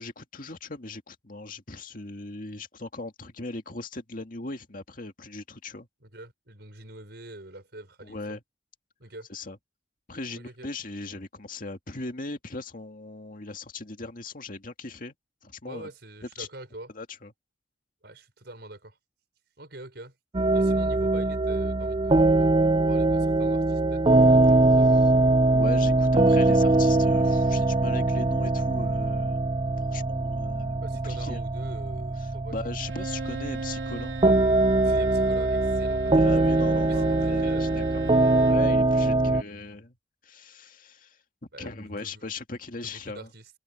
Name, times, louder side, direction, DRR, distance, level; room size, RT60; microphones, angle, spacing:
voice 1, 0.0-5.9 8.0-8.4 9.3-9.6 10.1-15.1 15.4-15.9 16.4-16.5 16.9-17.3 25.5-29.4 29.8-31.4 32.5-34.1 36.1-38.0 38.5-40.0 40.2-41.2 41.6-43.3, left 2 dB, 50° left, 2.1 m, -38 dB
voice 2, 6.0-8.2 9.0-9.3 10.3-10.7 15.6-16.9 18.0-19.0 19.6-20.1 20.5-25.1 30.8-32.5 34.8-36.2 36.5-37.8 41.5-42.3 42.8-43.5, right 1 dB, 60° right, 6.0 m, -45 dB
sound 1, 20.3-39.4, right 2 dB, 25° right, 0.5 m, -22 dB
Bowed string instrument, 32.8-38.7, right 4 dB, 90° right, 2.4 m, -39 dB
open air
head